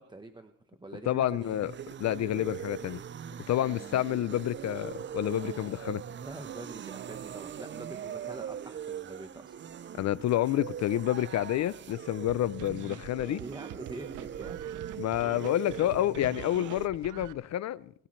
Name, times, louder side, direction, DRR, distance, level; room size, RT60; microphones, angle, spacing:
voice 1, 0.0-1.5 3.6-3.8 6.2-9.6 13.4-14.6, right 2 dB, 15° right, 1.1 m, -45 dB
voice 2, 1.1-1.7 2.0-3.0 3.5-6.0 10.0-13.4 15.0-18.1, left 13 dB, 65° left, 0.5 m, -29 dB
sound 1, 1.2-16.9, right 9 dB, 40° right, 0.5 m, -41 dB
sound 2, 12.3-17.3, right 12 dB, 90° right, 0.8 m, -45 dB
24.5 x 13.0 x 3.2 m
cardioid pair, 90°, 30 cm